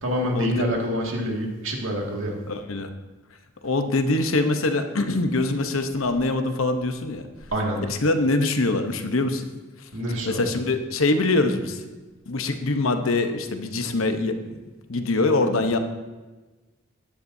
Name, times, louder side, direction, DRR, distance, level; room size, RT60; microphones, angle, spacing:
voice 1, 0.0-2.3 7.5-7.8 9.9-10.4, equal, 80° right, -1 dB, 2.1 m, -26 dB
voice 2, 2.5-2.9 3.6-7.3 7.9-9.5 9.8-9.9 10.3-11.8 12.3-14.3 14.9-15.8, left 2 dB, 85° left, 7 dB, 0.9 m, -23 dB
16.0 x 10.0 x 2.7 m, 1.2 s
head